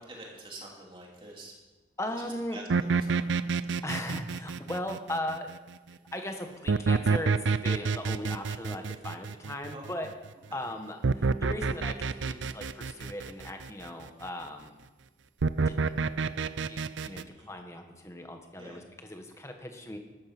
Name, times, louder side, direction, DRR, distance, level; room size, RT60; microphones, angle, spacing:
voice 1, 0.0-1.5 2.2-3.2 9.7-10.1 10.5-10.6 17.2-17.5 18.6-18.8, right 2 dB, 30° right, -1 dB, 2.9 m, -47 dB
voice 2, 2.0-2.6 3.8-5.5 5.9-10.1 10.5-14.7 15.6-15.9 16.7-20.0, left 1 dB, 15° left, 5 dB, 1.4 m, -38 dB
sound 1, 2.7-5.6 6.7-10.1 11.0-13.7 15.4-17.2, right 4 dB, 85° right, 0.5 m, -28 dB
13.0 x 12.5 x 6.1 m, 1.2 s
head